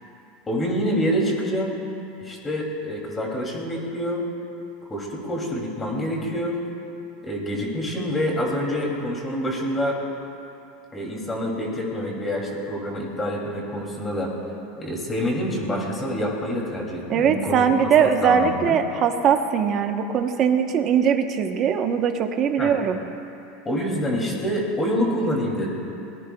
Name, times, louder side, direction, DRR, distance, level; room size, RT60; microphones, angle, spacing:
voice 1, 0.5-1.8 2.2-4.2 4.9-6.6 7.2-10.0 10.9-14.3 14.8-17.6 18.0-18.8 22.6-22.7 23.6-25.7, equal, 15° left, -1 dB, 2.7 m, -26 dB
voice 2, 17.1-23.0, right 7 dB, 30° right, 5 dB, 1.0 m, -21 dB
26.0 x 19.0 x 2.3 m, 2.7 s
supercardioid pair, 160°, 0 cm